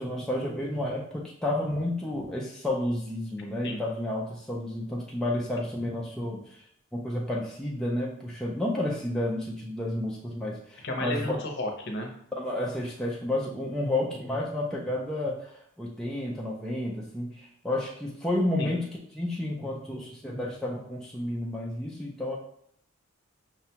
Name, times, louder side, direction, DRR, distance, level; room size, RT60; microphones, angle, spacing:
voice 1, 0.0-6.4 6.9-11.3 12.4-18.8 19.1-22.4, left 1 dB, 5° left, -4 dB, 0.4 m, -31 dB
voice 2, 10.8-12.1 18.6-18.8, left 1 dB, 55° left, 2 dB, 0.7 m, -33 dB
5.8 x 2.2 x 2.8 m, 0.67 s
head